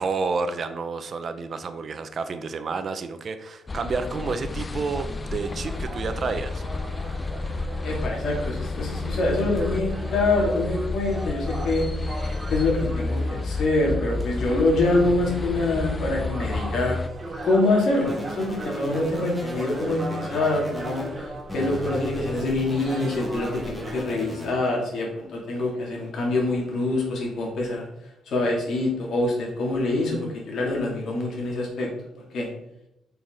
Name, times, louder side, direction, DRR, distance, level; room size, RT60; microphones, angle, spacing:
voice 1, 0.0-6.6, right 4 dB, 45° right, 10 dB, 0.8 m, -30 dB
sound 1, 3.7-17.1, left 3 dB, 25° left, 0.4 m, -31 dB
sound 2, 4.7-24.0, right 1 dB, 25° right, 2.6 m, -38 dB
voice 2, 7.8-11.9 12.5-17.0 17.4-27.9 28.3-31.9 32.3-32.5, left 2 dB, 65° left, -1 dB, 3.1 m, -25 dB
sound 3, 18.1-21.1 21.5-24.5, equal, 10° left, 2.5 m, -37 dB
8.6 x 5.9 x 4.0 m, 0.83 s
cardioid pair, 90°, 0 cm